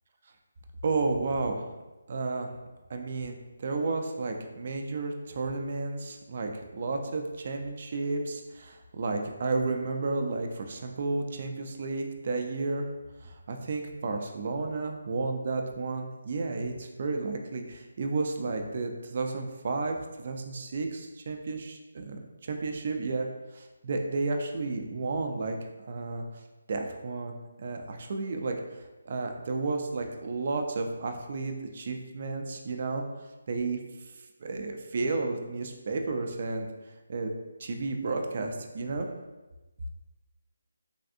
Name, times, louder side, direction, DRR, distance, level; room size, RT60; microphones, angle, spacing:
voice 1, 0.8-1.7 2.1-2.5 2.9-12.9 13.2-23.3 23.5-25.6 25.9-26.2 26.7-33.0 33.5-34.1 34.4-36.7 37.1-37.3 37.6-39.1, right 3 dB, 40° right, 4 dB, 0.3 m, -32 dB
3.3 x 2.4 x 2.6 m, 1.1 s
hypercardioid pair, 170°, 0 cm